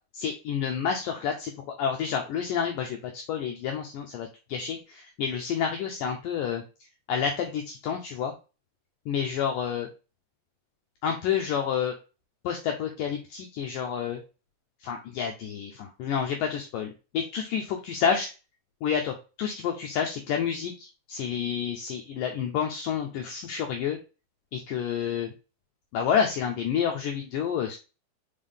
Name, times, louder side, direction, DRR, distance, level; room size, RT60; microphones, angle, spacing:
voice 1, 0.1-1.5 1.8-6.6 7.1-8.3 9.1-9.9 11.0-11.9 12.4-14.2 14.8-18.3 18.8-24.0 24.5-25.3 25.9-27.8, left 7 dB, 90° left, 3 dB, 1.9 m, -29 dB
5.6 x 4.8 x 3.4 m, 0.31 s
omnidirectional pair, 4.8 m